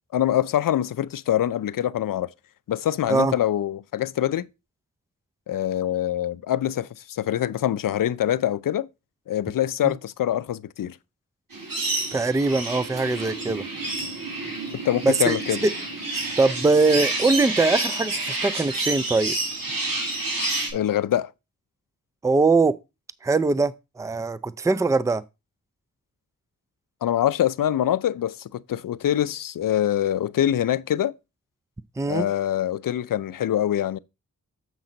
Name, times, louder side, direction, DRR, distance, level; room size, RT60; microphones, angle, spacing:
voice 1, 0.1-2.3 2.7-4.5 5.5-8.9 9.3-11.0 14.8-15.6 20.7-21.3 27.0-31.1 32.1-34.0, left 11 dB, 75° left, 0.5 m, -24 dB
sound 1, 11.5-20.7, right 2 dB, 85° right, 3.2 m, -29 dB
voice 2, 12.1-13.6 15.0-15.4 15.6-15.7 16.4-19.4 22.2-22.8 23.2-25.2 32.0-32.3, right 3 dB, 10° right, 0.4 m, -22 dB
7.4 x 5.8 x 3.9 m
cardioid pair, 50°, 33 cm